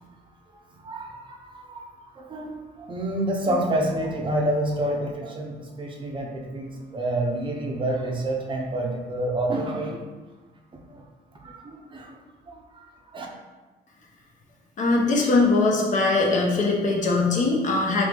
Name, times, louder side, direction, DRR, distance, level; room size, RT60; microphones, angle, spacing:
voice 1, 0.8-1.8 2.2-10.0 11.4-12.1 12.5-12.6 13.1-13.3, right 1 dB, 30° right, 0 dB, 0.6 m, -28 dB
voice 2, 14.8-18.0, left 3 dB, 45° left, -1 dB, 0.9 m, -21 dB
3.7 x 3.2 x 3.4 m, 1.2 s
cardioid pair, 110°, 17 cm